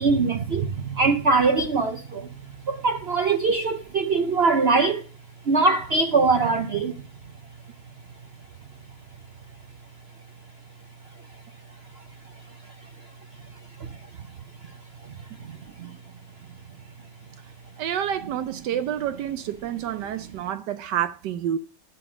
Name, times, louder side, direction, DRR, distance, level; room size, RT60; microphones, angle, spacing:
voice 1, 0.0-2.4 2.6-5.1 5.4-7.0 11.9-12.0 12.6-12.9 13.8-14.0 14.6-14.7 15.0-16.0, right 4 dB, 55° right, 0.7 m, -23 dB
voice 2, 17.8-21.6, right 10 dB, 80° right, 1.3 m, -28 dB
12.0 x 6.9 x 4.9 m
omnidirectional pair, 1.9 m